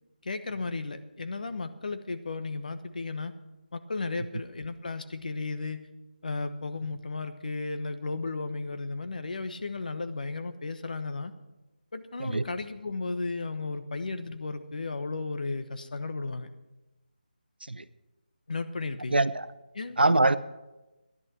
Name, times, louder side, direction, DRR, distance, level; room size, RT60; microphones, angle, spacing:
voice 1, 0.2-3.3 3.7-5.9 6.2-11.3 11.9-16.5 18.5-19.2 19.7-20.0, left 3 dB, 55° left, 9 dB, 1.1 m, -34 dB
voice 2, 19.1-19.4 20.0-20.4, right 2 dB, 85° right, 14 dB, 0.7 m, -23 dB
13.5 x 11.0 x 6.1 m, 1.1 s
figure-of-eight pair, 160°, 5 cm